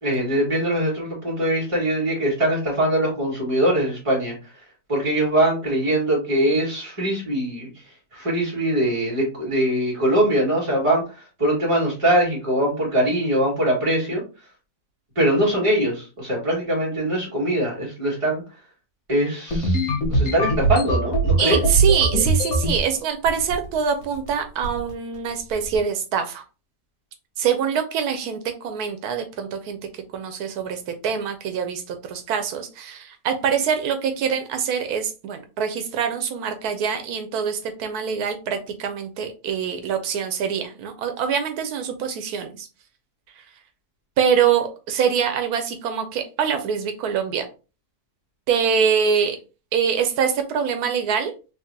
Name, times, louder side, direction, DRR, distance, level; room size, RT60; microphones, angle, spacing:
voice 1, 0.0-4.3 4.9-7.7 8.1-14.2 15.1-18.4 19.1-21.6, right 1 dB, 20° right, -3 dB, 1.8 m, -22 dB
sound 1, 19.5-22.8 23.3-23.8 24.0-24.3 24.6-24.9 25.5-25.8, right 2 dB, 70° left, 1.5 m, -21 dB
voice 2, 21.4-26.4 27.4-42.7 43.4-43.5 44.2-47.5 48.5-49.4 49.7-51.3, right 7 dB, 85° right, 7 dB, 1.1 m, -24 dB
3.7 x 3.1 x 2.7 m, 0.32 s
omnidirectional pair, 1.6 m